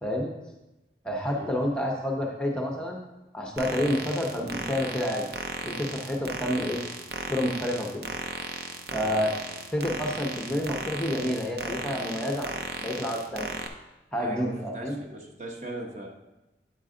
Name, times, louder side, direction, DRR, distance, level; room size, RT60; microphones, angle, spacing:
voice 1, 0.0-0.3 1.0-3.0 3.3-5.3 5.6-6.8 7.3-8.0 8.9-9.3 9.7-12.5 12.8-13.5 14.1-15.0, left 1 dB, 5° left, -1 dB, 0.6 m, -29 dB
sound 1, 3.6-13.7, right 3 dB, 55° right, 0.6 m, -36 dB
voice 2, 14.2-16.1, right 1 dB, 40° right, 0 dB, 1.0 m, -39 dB
9.2 x 4.6 x 3.7 m, 1.0 s
head